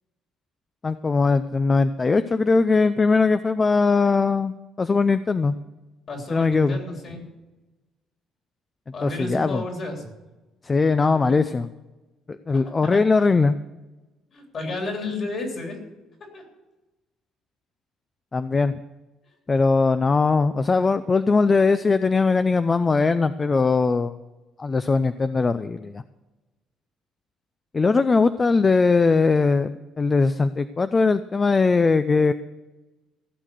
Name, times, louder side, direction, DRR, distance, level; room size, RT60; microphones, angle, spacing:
voice 1, 0.8-5.5 6.3-6.8 9.0-9.6 10.6-11.7 12.3-13.5 18.3-18.8 19.5-24.2 24.6-26.0 27.7-32.3, left 4 dB, 25° left, 12 dB, 0.4 m, -20 dB
voice 2, 6.1-7.2 8.9-10.1 11.2-11.3 12.8-13.3 14.3-15.8 16.2-16.4, left 2 dB, 45° left, 2 dB, 3.3 m, -32 dB
15.5 x 6.5 x 7.7 m, 1.1 s
cardioid pair, 130°, 0 cm